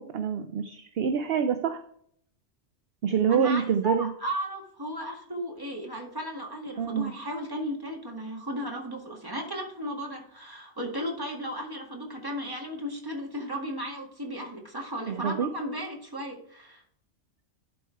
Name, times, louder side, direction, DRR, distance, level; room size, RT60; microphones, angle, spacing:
voice 1, 0.0-1.8 3.0-4.1 6.8-7.1 15.1-15.5, right 7 dB, 60° right, 8 dB, 0.8 m, -26 dB
voice 2, 3.3-16.8, equal, 20° right, 0 dB, 1.9 m, -35 dB
11.5 x 4.5 x 4.6 m, 0.65 s
omnidirectional pair, 1.2 m